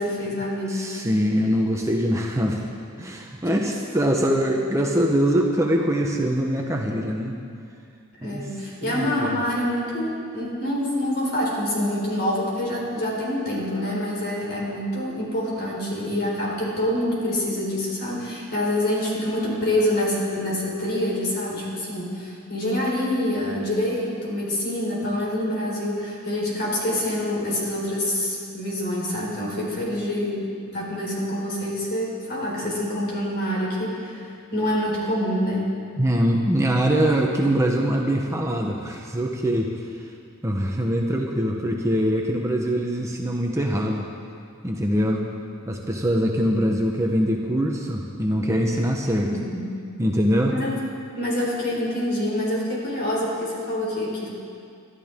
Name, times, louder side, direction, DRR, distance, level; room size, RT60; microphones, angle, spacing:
voice 1, 0.0-0.8 8.2-35.7 49.3-49.7 50.5-50.8 51.2-54.3, left 1 dB, 50° left, -4 dB, 4.4 m, -26 dB
voice 2, 0.7-2.6 3.0-7.4 8.2-8.5 8.8-9.4 36.0-39.7 40.0-40.1 40.4-44.0 44.6-45.2 45.7-49.3 50.0-50.6, equal, 15° right, 0 dB, 1.0 m, -23 dB
24.0 x 12.5 x 3.7 m, 2.3 s
head